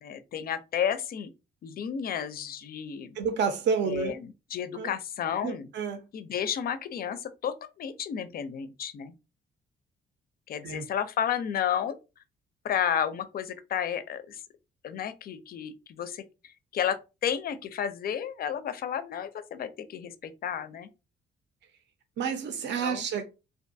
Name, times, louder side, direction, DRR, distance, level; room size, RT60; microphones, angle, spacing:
voice 1, 0.0-1.3 1.6-3.2 3.8-5.7 6.1-9.1 10.5-12.0 12.6-14.4 14.8-20.9 22.8-23.0, left 8 dB, 50° left, 0.4 m, -32 dB
voice 2, 3.2-4.1 4.8-4.9 5.4-6.0 10.6-10.8 22.2-23.2, right 6 dB, 65° right, 0.6 m, -29 dB
2.5 x 2.2 x 2.6 m
cardioid pair, 90°, 20 cm